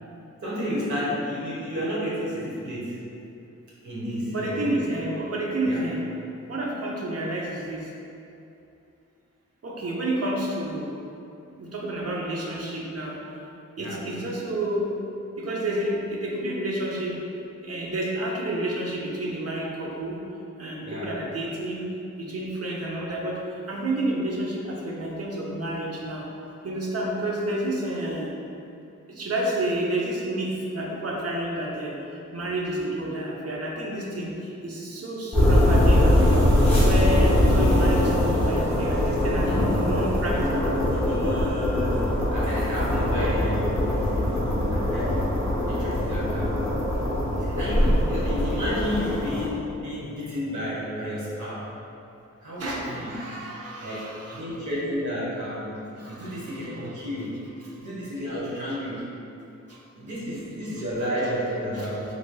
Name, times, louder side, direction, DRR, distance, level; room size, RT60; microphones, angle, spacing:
voice 1, 0.4-3.0 3.8-4.8 5.7-5.8 13.7-14.0 20.8-21.1 39.4-39.6 40.3-46.6 47.4-51.7 52.4-53.2 53.8-57.4 57.8-59.0 59.9-62.1, equal, 75° right, -8 dB, 1.1 m, -31 dB
voice 2, 4.3-6.0 6.5-7.9 9.6-10.9 11.5-13.2 13.8-14.9 15.4-17.2 17.6-20.2 20.6-21.8 22.2-23.4 23.7-26.2 26.6-28.3 29.1-36.4 36.8-40.8 52.6-54.4 56.0-57.1 57.8-57.9 59.7-59.8 61.7-62.1, right 1 dB, 55° right, -3 dB, 0.7 m, -30 dB
sound 1, 35.3-49.5, left 1 dB, 5° left, 1.1 m, -22 dB
3.9 x 3.2 x 2.2 m, 2.7 s
wide cardioid pair, 65°, 30 cm